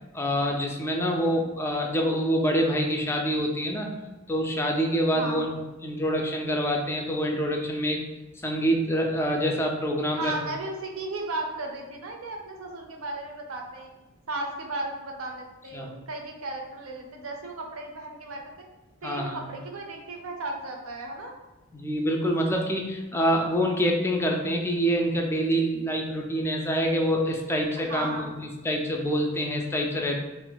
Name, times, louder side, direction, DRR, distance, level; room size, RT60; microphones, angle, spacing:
voice 1, 0.1-3.9 4.3-8.0 8.4-10.3 15.7-15.9 19.0-19.5 21.7-28.3 28.6-30.2, equal, 10° left, 1 dB, 0.3 m, -26 dB
voice 2, 5.1-5.5 10.1-13.9 14.3-18.4 19.0-21.4 27.8-28.3, right 2 dB, 75° right, 2 dB, 0.6 m, -35 dB
2.5 x 2.3 x 3.8 m, 1.1 s
head